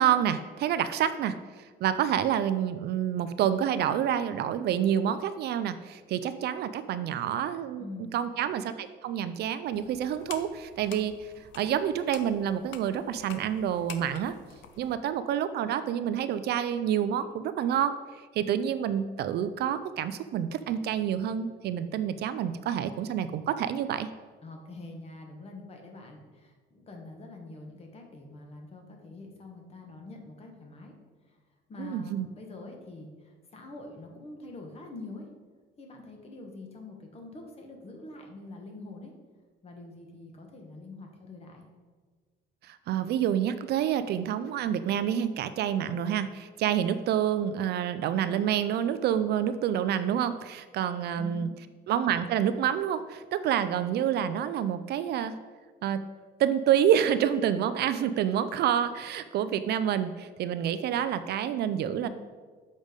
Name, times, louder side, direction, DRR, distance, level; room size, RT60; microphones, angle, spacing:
voice 1, 0.0-7.9 8.1-14.4 14.8-24.1 31.8-32.3 42.6-51.5 51.9-55.4 55.8-56.1 56.4-62.1, right 9 dB, 55° right, 12 dB, 0.4 m, -28 dB
voice 2, 7.8-8.2 24.4-30.9 31.2-31.4 31.7-35.3 35.8-39.1 39.6-41.7 51.2-51.5 62.0-62.1, left 2 dB, 30° left, 2 dB, 1.3 m, -45 dB
sound 1, 9.7-14.9, left 8 dB, 70° left, 0.6 m, -48 dB
7.2 x 5.1 x 5.1 m, 1.5 s
cardioid pair, 155°, 20 cm